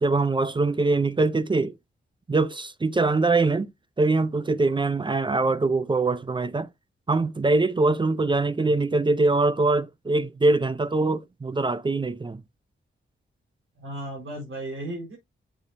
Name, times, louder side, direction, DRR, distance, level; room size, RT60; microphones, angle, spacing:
voice 1, 0.0-1.7 2.3-3.7 4.0-6.7 7.1-12.4, right 3 dB, 25° right, 0.5 m, -23 dB
voice 2, 13.8-15.2, right 1 dB, 75° right, 4.3 m, -35 dB
7.0 x 6.9 x 2.6 m
wide cardioid pair, 130°, 21 cm